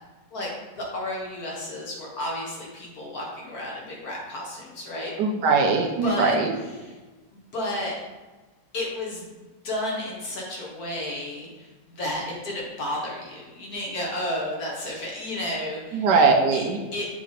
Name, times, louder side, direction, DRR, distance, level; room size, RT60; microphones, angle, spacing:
voice 1, 0.3-5.1 6.0-6.4 6.8-7.0 7.3-7.9 8.7-9.2 9.6-16.1 16.5-16.6 16.9-17.1, left 1 dB, 55° left, -3 dB, 1.8 m, -32 dB
voice 2, 5.2-6.5 15.9-16.8, right 4 dB, 70° right, 3 dB, 1.2 m, -20 dB
7.3 x 3.5 x 4.0 m, 1.2 s
omnidirectional pair, 2.0 m